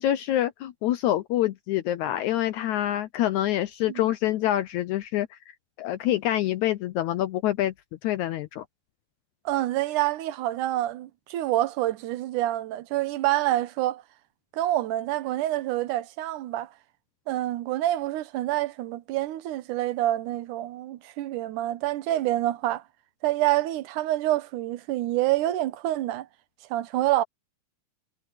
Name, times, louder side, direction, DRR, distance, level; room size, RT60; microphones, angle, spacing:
voice 1, 0.0-5.4 5.8-7.7 8.0-8.6, left 13 dB, 80° left, 1.7 m, -26 dB
voice 2, 9.5-14.0 14.5-16.7 17.3-22.8 23.2-26.3 26.7-27.2, right 15 dB, 70° right, 2.2 m, -27 dB
omnidirectional pair, 4.1 m